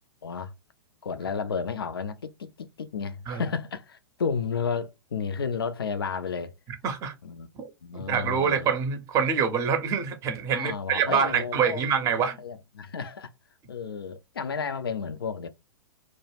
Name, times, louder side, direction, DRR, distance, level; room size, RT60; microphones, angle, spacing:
voice 1, 0.2-0.5 1.0-6.5 7.2-7.5 7.8-8.7 10.5-12.1 12.4-13.3 13.7-15.5, left 5 dB, 70° left, 0.4 m, -32 dB
voice 2, 6.8-7.1 7.6-7.7 7.9-12.4, right 7 dB, 25° right, 0.6 m, -25 dB
2.2 x 2.0 x 3.2 m
figure-of-eight pair, 105°, 13 cm